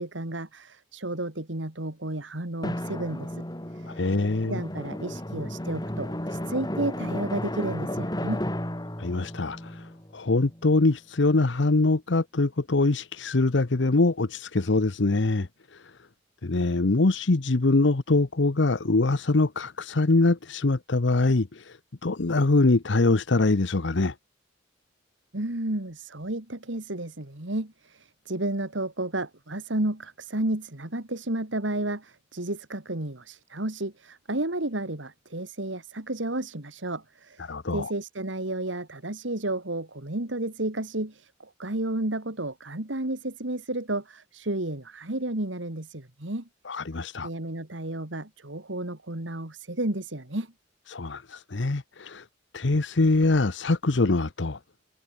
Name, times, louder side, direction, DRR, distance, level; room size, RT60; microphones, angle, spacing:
voice 1, 0.0-3.4 3.7-4.0 4.5-8.5 25.3-46.5 47.2-50.5, right 1 dB, 75° right, 2.7 m, -32 dB
Drum, 2.6-10.9, left 1 dB, 20° left, 4.2 m, -34 dB
voice 2, 3.9-4.6 9.0-15.9 16.4-24.1 37.4-37.9 46.7-47.3 50.9-52.2 52.5-54.6, left 2 dB, 65° left, 0.9 m, -24 dB
head